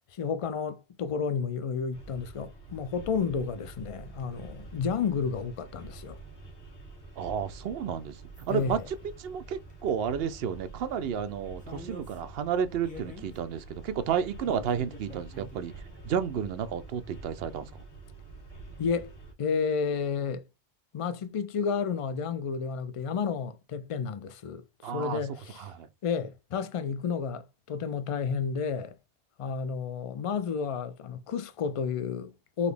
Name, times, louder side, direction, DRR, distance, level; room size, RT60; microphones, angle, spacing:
voice 1, 0.1-6.2 8.5-8.8 18.8-19.1 19.4-20.4 20.9-25.6 26.0-29.0 29.4-32.7, left 6 dB, 60° left, 0.3 m, -31 dB
sound 1, 1.9-19.3, right 2 dB, 75° left, 1.9 m, -47 dB
voice 2, 7.2-15.7 16.0-17.7 24.8-25.9, right 8 dB, 65° right, 0.8 m, -32 dB
sound 2, 8.3-8.6 9.7-9.9 11.6-12.2 12.8-13.4 14.4-15.6, equal, 10° left, 0.9 m, -45 dB
4.0 x 2.9 x 3.4 m
omnidirectional pair, 1.1 m